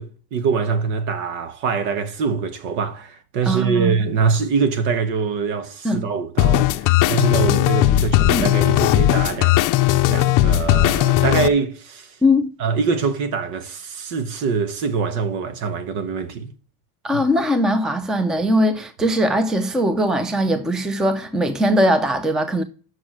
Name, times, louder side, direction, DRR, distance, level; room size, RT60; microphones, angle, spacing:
voice 1, 0.0-9.6 10.1-12.2 12.6-16.5, right 5 dB, 70° right, 1.3 m, -24 dB
voice 2, 3.5-3.9 5.8-6.1 8.3-8.5 12.2-12.5 17.0-22.6, equal, ahead, 0.5 m, -20 dB
sound 1, 6.4-11.5, left 15 dB, 45° left, 0.5 m, -17 dB
6.8 x 6.3 x 6.2 m
cardioid pair, 140°, 45 cm